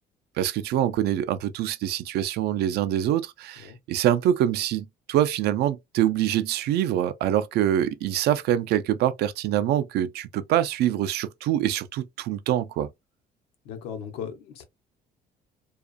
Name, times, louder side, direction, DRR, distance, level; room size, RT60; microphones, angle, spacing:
voice 1, 0.4-12.9, right 11 dB, 70° right, 0.4 m, -25 dB
voice 2, 13.6-14.6, left 7 dB, 90° left, 0.8 m, -37 dB
2.4 x 2.3 x 2.4 m
cardioid pair, 110°, 17 cm